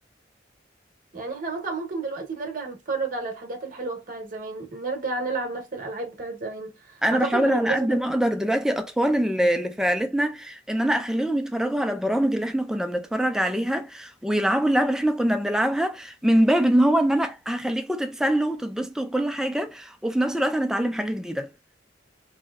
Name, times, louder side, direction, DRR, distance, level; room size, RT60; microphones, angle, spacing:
voice 1, 1.1-7.9, right 3 dB, 45° right, 0.9 m, -31 dB
voice 2, 7.0-21.5, right 1 dB, 5° right, 0.4 m, -24 dB
4.0 x 2.7 x 2.3 m
head